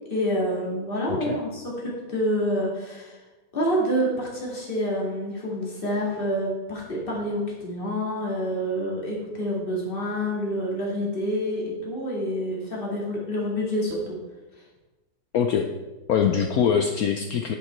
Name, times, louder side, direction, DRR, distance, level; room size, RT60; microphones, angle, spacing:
voice 1, 0.1-3.2 3.5-14.1 16.2-16.3, equal, 30° left, -3 dB, 2.5 m, -27 dB
voice 2, 15.3-15.7 16.1-17.6, left 7 dB, 65° left, 5 dB, 1.0 m, -23 dB
9.8 x 8.0 x 4.5 m, 1.1 s
omnidirectional pair, 1.9 m